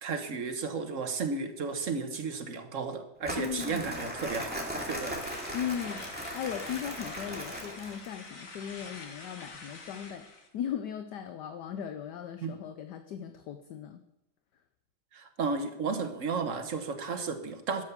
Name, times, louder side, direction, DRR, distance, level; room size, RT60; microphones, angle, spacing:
voice 1, 0.0-5.3 12.4-12.6 15.1-17.8, right 4 dB, 45° right, 7 dB, 1.3 m, -33 dB
Crumpling crinkling, 3.2-8.1, equal, 5° right, 2.4 m, -38 dB
voice 2, 3.4-3.9 5.5-6.1 6.3-10.3 10.5-14.0, left 9 dB, 65° left, 9 dB, 1.2 m, -37 dB
sound 1, 5.2-10.5, left 3 dB, 45° left, 1.9 m, -46 dB
12.5 x 8.3 x 6.8 m, 0.87 s
omnidirectional pair, 2.1 m